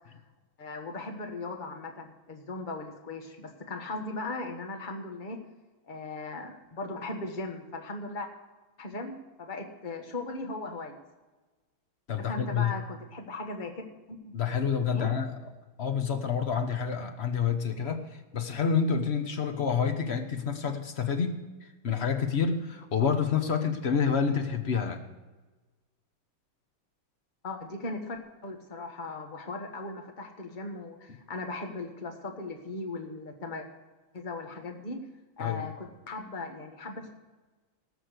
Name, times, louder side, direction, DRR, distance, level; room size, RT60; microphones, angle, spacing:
voice 1, 0.6-5.4 5.9-8.3 8.8-10.9 12.2-13.8 14.2-14.4 14.9-15.1 27.4-33.6 34.1-35.0 35.4-37.1, left 2 dB, 25° left, 3 dB, 1.4 m, -38 dB
voice 2, 12.1-12.7 14.3-15.4 15.8-25.0 35.4-35.7, left 6 dB, 45° left, 6 dB, 0.9 m, -28 dB
18.0 x 6.2 x 6.7 m, 1.2 s
omnidirectional pair, 2.3 m